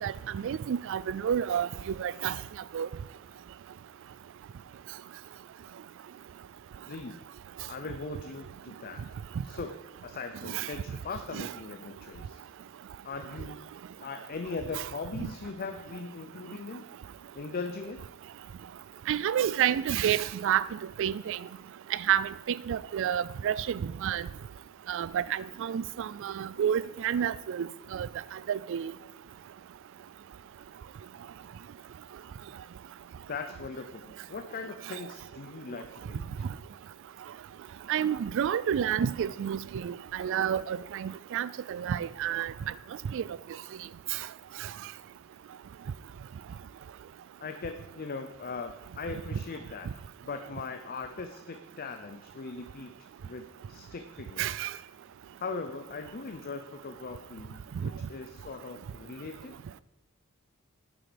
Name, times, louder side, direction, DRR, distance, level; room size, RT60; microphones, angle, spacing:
voice 1, 0.0-2.4 2.7-2.9 10.5-10.7 11.3-11.5 14.8-14.9 19.1-20.7 21.0-21.4 21.9-24.3 24.9-28.1 28.5-28.9 37.9-42.5 43.1-43.2 54.4-54.7, right 9 dB, 60° right, 0.3 m, -30 dB
voice 2, 6.9-7.2 7.7-9.0 9.4-12.4 13.0-13.6 14.0-16.9 17.3-18.0 33.3-36.5 47.4-49.9 50.2-54.5 55.4-59.6, left 4 dB, 45° left, 0.6 m, -40 dB
9.0 x 7.7 x 5.1 m
head